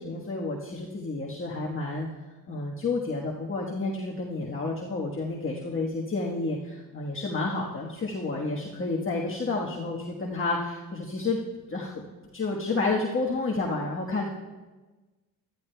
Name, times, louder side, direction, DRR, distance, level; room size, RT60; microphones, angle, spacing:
voice 1, 0.0-2.1 2.5-11.4 11.7-12.1 12.3-14.3, left 3 dB, 35° left, -3 dB, 1.4 m, -30 dB
14.5 x 13.0 x 2.3 m, 1.2 s
cardioid pair, 65°, 37 cm